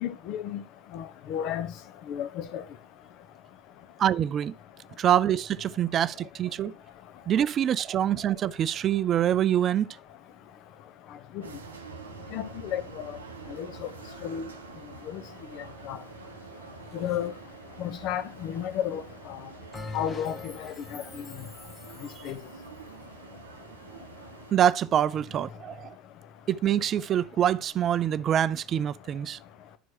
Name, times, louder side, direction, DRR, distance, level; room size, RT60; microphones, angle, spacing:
voice 1, 0.0-0.6 0.9-1.7 2.1-2.6 12.3-13.1 13.6-13.9 14.2-14.5 15.1-15.2 15.9-16.0 16.9-17.3 17.8-19.0 19.9-21.2 22.2-22.4, left 10 dB, 50° left, 0.7 m, -32 dB
voice 2, 4.0-4.5 5.0-6.7 7.3-9.9 22.2-22.3 24.5-26.0 26.5-29.4, right 10 dB, 40° right, 0.4 m, -25 dB
sound 1, 11.4-24.5, right 5 dB, 80° right, 0.7 m, -46 dB
Bell, 19.7-22.5, left 3 dB, 25° left, 0.9 m, -43 dB
11.0 x 4.6 x 2.9 m
figure-of-eight pair, 70°, 0 cm